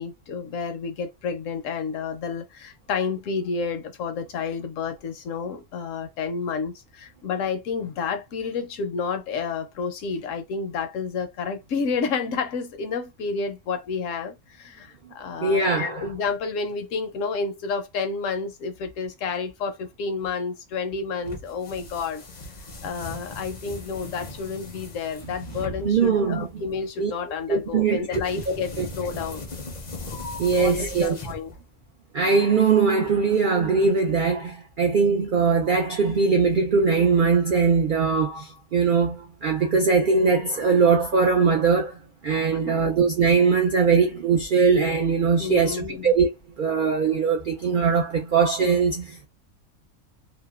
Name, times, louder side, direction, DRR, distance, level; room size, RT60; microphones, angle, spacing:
voice 1, 0.0-22.2 22.8-29.5 30.6-31.5 42.5-43.0 44.0-44.1 45.4-46.1, left 5 dB, 70° left, 0.9 m, -30 dB
voice 2, 15.4-16.0 25.6-26.6 27.0-27.1 27.5-28.9 30.4-31.2 32.1-42.0 42.2-46.3 46.6-49.3, right 5 dB, 70° right, 0.4 m, -21 dB
sound 1, 21.2-31.8, left 2 dB, 45° left, 0.6 m, -38 dB
2.7 x 2.1 x 2.3 m
omnidirectional pair, 1.4 m